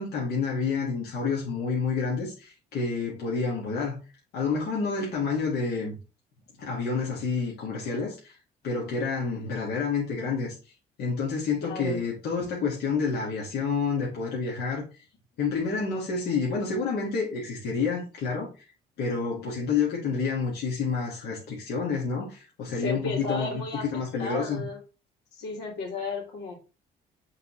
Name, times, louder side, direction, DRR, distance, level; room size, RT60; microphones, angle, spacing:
voice 1, 0.0-4.0 4.3-6.0 6.6-8.4 8.6-10.6 11.0-14.9 15.4-18.7 19.0-24.6, left 5 dB, 70° left, 2.2 m, -29 dB
voice 2, 11.6-12.0 22.7-24.8 25.3-26.5, left 3 dB, 85° left, 2.9 m, -34 dB
8.3 x 4.1 x 3.2 m
cardioid pair, 110°, 17 cm